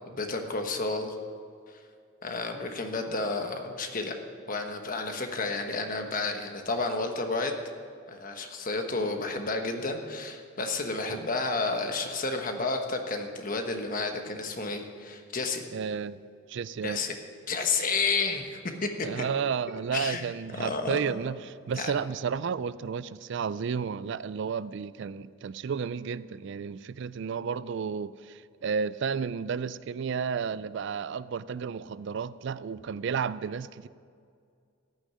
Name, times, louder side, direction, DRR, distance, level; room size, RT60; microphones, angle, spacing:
voice 1, 0.1-1.1 2.2-4.1 4.5-7.5 8.1-15.6 16.8-17.1 17.5-18.9 19.2-19.3 19.9-20.3 20.5-21.2 21.8-21.9, left 3 dB, 40° left, 5 dB, 1.2 m, -31 dB
voice 2, 15.7-16.2 16.5-17.0 19.0-21.4 21.7-33.9, right 6 dB, 60° right, 17 dB, 0.4 m, -32 dB
15.0 x 6.4 x 9.9 m, 2.2 s
head